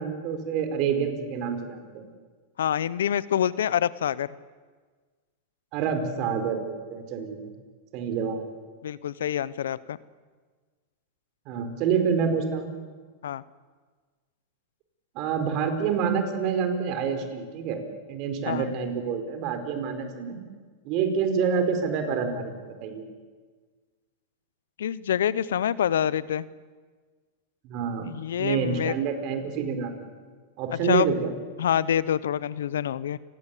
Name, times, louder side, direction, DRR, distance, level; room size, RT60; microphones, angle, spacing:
voice 1, 0.0-2.1 5.7-7.5 7.9-8.5 11.5-12.7 15.1-17.8 18.1-20.4 20.8-22.5 22.8-23.0 27.6-28.1 28.4-30.1 30.6-31.3, right 6 dB, 50° right, 7 dB, 4.7 m, -27 dB
voice 2, 2.6-4.3 8.8-10.0 13.2-13.4 18.5-18.7 24.8-26.5 28.0-28.9 30.7-31.1 31.6-33.2, left 10 dB, 80° left, 19 dB, 0.9 m, -26 dB
29.5 x 17.5 x 8.6 m, 1.5 s
hypercardioid pair, 115°, 0 cm